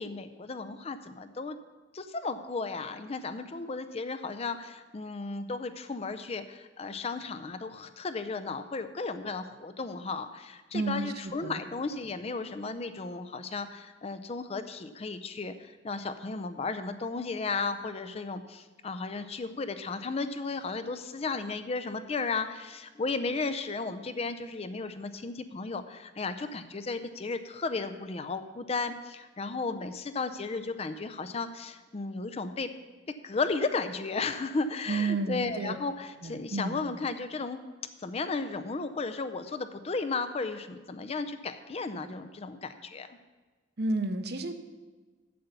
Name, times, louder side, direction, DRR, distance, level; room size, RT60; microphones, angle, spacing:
voice 1, 0.0-1.6 1.9-32.7 33.2-37.6 38.0-43.2, left 4 dB, 30° left, 10 dB, 0.4 m, -34 dB
voice 2, 10.7-11.6 34.9-35.7 36.2-36.8 43.8-44.5, right 3 dB, 55° right, 8 dB, 0.7 m, -31 dB
7.7 x 7.0 x 6.7 m, 1.3 s
head